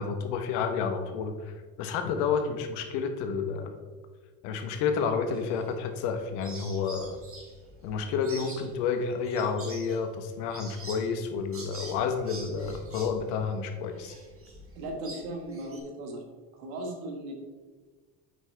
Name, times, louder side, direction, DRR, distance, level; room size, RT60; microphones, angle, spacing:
voice 1, 0.0-3.7 4.4-7.2 7.8-14.1, left 6 dB, 70° left, 7 dB, 1.2 m, -30 dB
sound 1, 5.3-6.1 6.4-15.8, right 2 dB, 30° right, 2.1 m, -46 dB
voice 2, 14.7-16.2 16.6-17.3, right 1 dB, 80° right, 3 dB, 1.7 m, -37 dB
8.1 x 5.7 x 3.4 m, 1.4 s
hypercardioid pair, 85°, 43 cm